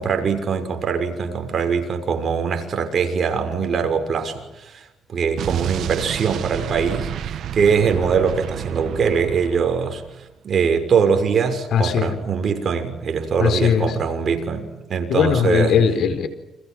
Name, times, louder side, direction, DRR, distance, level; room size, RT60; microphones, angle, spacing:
voice 1, 0.0-10.0 10.4-15.8, right 6 dB, 50° right, 6 dB, 6.3 m, -22 dB
Explosion, 5.4-10.2, right 10 dB, 70° right, 1.3 m, -30 dB
voice 2, 11.7-12.1 13.4-13.9 15.1-16.3, left 7 dB, 70° left, 10 dB, 4.5 m, -19 dB
29.5 x 27.5 x 6.3 m, 0.99 s
cardioid pair, 90°, 0 cm